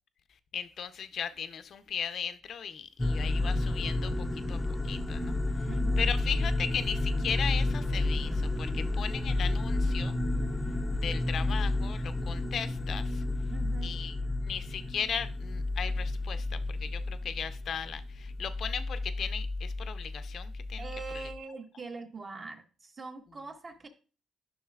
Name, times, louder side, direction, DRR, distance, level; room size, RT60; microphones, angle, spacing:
voice 1, 0.5-4.6 4.8-5.7 6.0-10.2 11.0-13.2 13.8-14.1 14.4-20.9 21.1-21.2, left 7 dB, 60° left, 0.6 m, -37 dB
sound 1, 3.0-21.4, left 2 dB, 15° left, 0.6 m, -31 dB
voice 2, 5.7-6.1 13.5-14.0 20.8-23.9, right 4 dB, 35° right, 1.3 m, -42 dB
10.5 x 6.0 x 2.4 m
cardioid pair, 90°, 0 cm